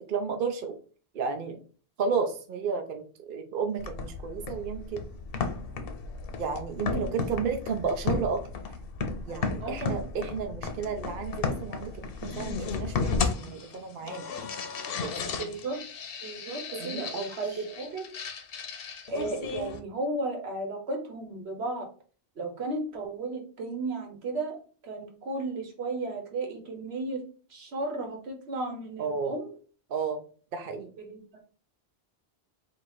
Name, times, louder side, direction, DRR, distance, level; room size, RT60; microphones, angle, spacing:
voice 1, 0.1-0.8 1.1-1.6 2.0-5.0 6.4-8.4 9.3-14.3 15.0-15.5 16.8-17.4 29.0-29.3 29.9-30.2 30.5-30.9, right 5 dB, 60° right, 5 dB, 0.8 m, -32 dB
sound 1, 3.8-19.8, left 4 dB, 65° left, 0.8 m, -34 dB
voice 2, 9.6-10.0 15.4-15.8 16.2-18.0 19.1-21.9 22.4-24.6 24.8-27.2 27.5-29.5 31.0-31.2, right 2 dB, 80° right, 2 dB, 1.3 m, -34 dB
3.8 x 2.5 x 4.6 m, 0.40 s
omnidirectional pair, 1.1 m